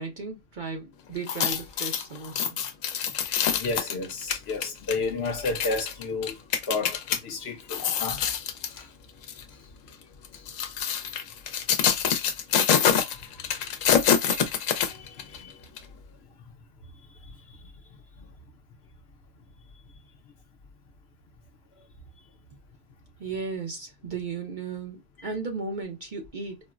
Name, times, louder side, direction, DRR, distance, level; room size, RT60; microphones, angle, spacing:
voice 1, 0.0-2.6 23.2-26.6, right 4 dB, 50° right, 0.7 m, -35 dB
sound 1, 1.2-7.2 7.6-8.8 9.2-9.4 10.2-15.4 15.8-15.9, left 8 dB, 85° left, 1.0 m, -26 dB
voice 2, 3.4-6.4 6.7-8.2 8.7-8.9 10.3-10.4 13.1-13.2 14.7-15.5 18.2-18.3, left 3 dB, 60° left, 0.8 m, -32 dB
4.2 x 2.0 x 2.3 m
omnidirectional pair, 1.3 m